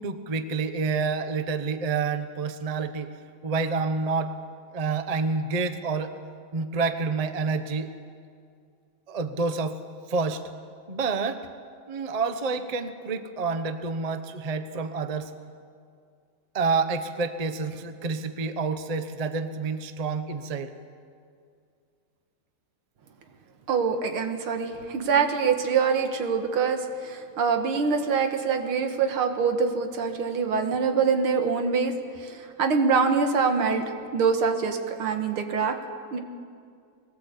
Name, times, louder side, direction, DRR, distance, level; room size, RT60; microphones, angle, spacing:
voice 1, 0.0-3.1 3.4-4.3 4.7-6.2 6.5-7.9 9.1-9.8 10.1-10.4 10.9-11.5 11.9-15.3 16.5-20.7, right 4 dB, 35° right, 9 dB, 0.6 m, -28 dB
voice 2, 23.7-35.8 36.1-36.2, right 5 dB, 90° right, 6 dB, 2.4 m, -25 dB
21.5 x 18.0 x 8.3 m, 2.3 s
omnidirectional pair, 2.3 m